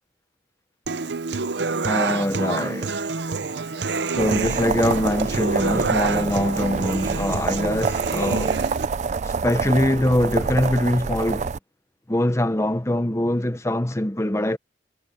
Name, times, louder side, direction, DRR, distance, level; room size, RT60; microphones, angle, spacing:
Human voice / Acoustic guitar, 0.9-8.8, right 4 dB, 60° right, 0.7 m, -27 dB
voice 1, 1.8-3.0 4.1-8.6 9.2-11.5 12.1-14.6, left 1 dB, 15° left, 0.8 m, -23 dB
sound 1, 4.2-11.6, right 5 dB, 35° right, 0.3 m, -27 dB
head